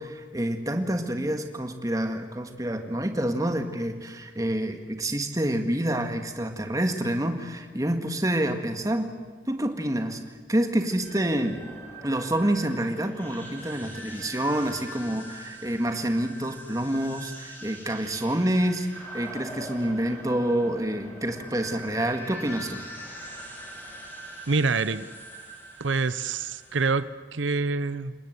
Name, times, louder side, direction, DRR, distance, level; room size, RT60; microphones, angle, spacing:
voice 1, 0.0-9.1 9.5-10.2 10.5-11.6 12.0-22.8, right 1 dB, 20° right, 6 dB, 1.8 m, -27 dB
sound 1, 10.9-26.9, equal, 10° left, 5.3 m, -42 dB
voice 2, 24.5-25.1 25.8-28.1, right 4 dB, 80° right, 15 dB, 0.7 m, -26 dB
30.0 x 19.5 x 8.1 m, 1.5 s
head